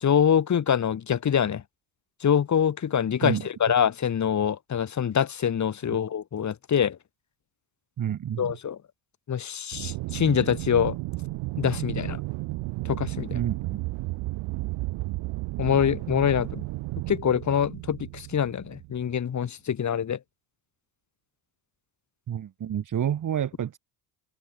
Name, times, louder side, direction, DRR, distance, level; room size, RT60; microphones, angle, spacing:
voice 1, 0.0-1.6 2.2-7.0 8.4-8.8 9.3-11.0 11.6-12.2 12.8-13.4 15.6-16.7 17.1-20.2, left 8 dB, 35° left, 2.1 m, -25 dB
voice 2, 8.0-8.5 13.3-13.8 22.3-23.8, right 9 dB, 40° right, 1.7 m, -29 dB
Aircraft, 9.7-19.2, right 21 dB, 65° right, 2.9 m, -33 dB
hypercardioid pair, 65°, 48 cm